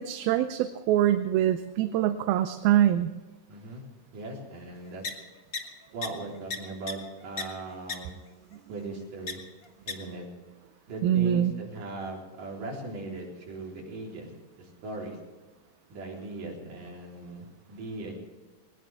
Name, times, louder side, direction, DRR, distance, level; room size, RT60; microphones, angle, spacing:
voice 1, 0.0-3.1 11.0-11.5, right 11 dB, 85° right, 9 dB, 2.5 m, -24 dB
voice 2, 3.5-3.8 4.1-5.0 5.9-8.2 8.7-9.4 9.9-10.3 10.9-15.2 15.9-18.2, right 2 dB, 60° right, -3 dB, 5.3 m, -39 dB
sound 1, 5.0-5.1 5.5-5.6 6.0-6.1 6.5-6.6 6.9-7.0 7.4-7.5 7.9-8.0 9.3-9.4 9.9-10.0, left 5 dB, 80° left, 0.7 m, -31 dB
20.0 x 20.0 x 3.5 m, 1.2 s
omnidirectional pair, 4.2 m